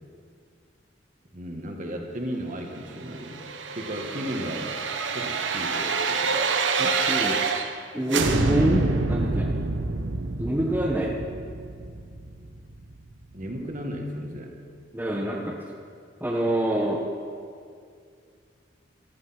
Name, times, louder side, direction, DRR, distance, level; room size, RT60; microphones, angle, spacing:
voice 1, 1.3-3.4 3.7-4.7 5.1-6.4 13.3-14.6, equal, 45° right, 2 dB, 1.9 m, -35 dB
sound 1, 3.1-7.8 8.1-13.0 13.3-13.4, right 4 dB, 75° right, 1.0 m, -27 dB
voice 2, 6.8-7.4 7.9-9.5 10.4-11.1 14.9-15.5 16.2-17.0, right 1 dB, 10° right, -1 dB, 1.1 m, -26 dB
15.0 x 12.5 x 6.0 m, 2.2 s
head